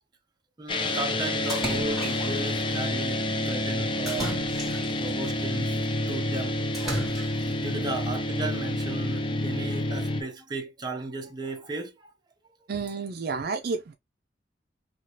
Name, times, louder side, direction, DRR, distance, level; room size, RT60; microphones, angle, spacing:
voice 1, 0.6-4.4 5.0-5.8 6.1-6.6 7.5-12.1, right 3 dB, 25° right, 0.8 m, -35 dB
sound 1, 0.7-10.2, left 1 dB, 30° left, 0.5 m, -28 dB
Splash splatter, 1.5-2.5 4.1-5.1 6.7-7.6, right 1 dB, ahead, 1.7 m, -34 dB
voice 2, 12.7-13.9, right 4 dB, 60° right, 0.4 m, -30 dB
2.9 x 2.8 x 3.1 m
head